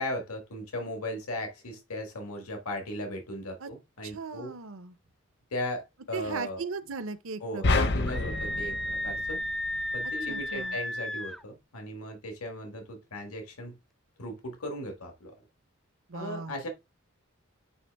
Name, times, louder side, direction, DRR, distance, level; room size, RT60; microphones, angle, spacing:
voice 1, 0.0-4.5 5.5-6.6 7.4-9.4 9.9-13.8 14.2-15.3 16.1-16.7, left 1 dB, 90° left, 1.6 m, -37 dB
voice 2, 4.0-5.0 6.1-7.9 10.3-10.8 16.1-16.7, right 4 dB, 65° right, 0.6 m, -38 dB
sound 1, 7.6-10.0, left 2 dB, 50° left, 0.7 m, -29 dB
Screaming, 8.1-11.4, left 1 dB, ahead, 0.3 m, -33 dB
9.1 x 3.2 x 3.4 m
head